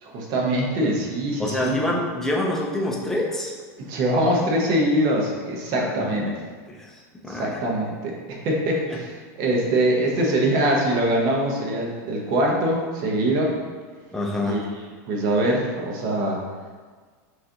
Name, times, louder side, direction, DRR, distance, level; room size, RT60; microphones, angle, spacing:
voice 1, 0.0-1.9 3.8-6.3 7.3-13.5 14.4-16.4, right 1 dB, 45° right, -1 dB, 1.0 m, -23 dB
voice 2, 1.4-3.5 5.7-6.3 6.7-6.8 7.2-7.6 8.9-9.0 14.1-14.6, left 1 dB, 5° left, -2 dB, 0.6 m, -26 dB
6.0 x 2.6 x 2.9 m, 1.5 s
supercardioid pair, 140°, 9 cm